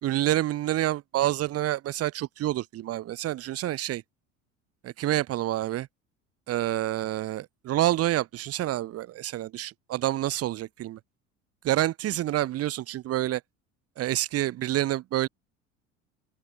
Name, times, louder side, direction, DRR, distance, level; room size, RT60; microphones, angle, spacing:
voice 1, 0.0-4.0 4.8-5.9 6.5-11.0 11.6-13.4 14.0-15.3, right 14 dB, 35° right, 0.8 m, -28 dB
open air
hypercardioid pair, 75°, 40 cm